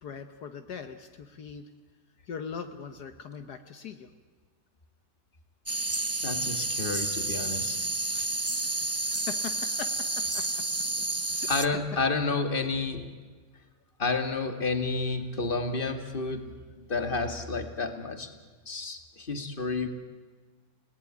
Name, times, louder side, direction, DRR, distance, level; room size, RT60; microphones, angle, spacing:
voice 1, 0.0-1.7 2.3-4.1 8.9-10.5 11.3-11.5, left 6 dB, 70° left, 8 dB, 1.7 m, -41 dB
sound 1, 5.7-11.7, right 2 dB, 25° right, 0.3 m, -30 dB
voice 2, 6.2-7.8 8.1-8.3 11.5-13.1 14.0-16.5 16.8-18.3 18.7-19.9, left 3 dB, 30° left, 8 dB, 2.4 m, -30 dB
29.5 x 18.5 x 9.9 m, 1.5 s
omnidirectional pair, 1.8 m